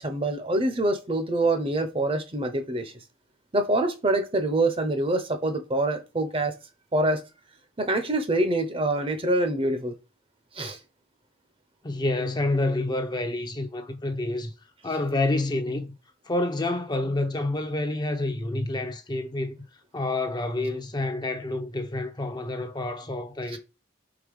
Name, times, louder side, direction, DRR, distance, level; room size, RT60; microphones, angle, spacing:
voice 1, 0.0-2.9 3.5-6.5 6.9-7.2 7.8-9.9 10.6-10.8 23.5-23.6, right 2 dB, 30° right, 0.8 m, -25 dB
voice 2, 11.8-14.5 14.8-15.9 16.3-19.6 19.9-23.6, left 2 dB, 20° left, 0.7 m, -28 dB
4.9 x 4.1 x 5.3 m
head